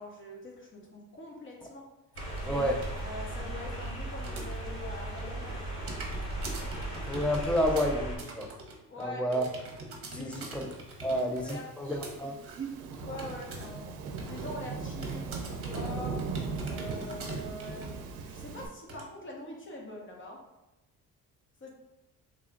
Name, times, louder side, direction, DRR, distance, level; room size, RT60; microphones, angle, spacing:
voice 1, 0.0-1.8 2.4-2.7 3.0-5.9 8.9-9.4 10.1-10.6 11.1-12.4 13.0-13.9 14.3-16.2 16.7-18.0 18.2-20.4 21.6-21.7, left 2 dB, 35° left, -1 dB, 1.1 m, -43 dB
sound 1, 2.1-8.2, right 1 dB, 80° left, 1.4 m, -37 dB
sound 2, 2.2-3.0 3.4-4.8 5.1-13.8 14.1-14.6 15.0-18.0 18.4-18.5 18.9-19.1, right 3 dB, 40° right, 1.0 m, -43 dB
voice 2, 2.5-2.8 7.1-8.5 9.0-9.4 10.1-10.7 11.0-12.4, equal, 5° left, 2 dB, 0.5 m, -30 dB
Thunderstorm / Rain, 11.0-18.7, right 4 dB, 75° right, 0.6 m, -38 dB
3.5 x 2.4 x 3.6 m, 0.98 s
cardioid pair, 85°, 36 cm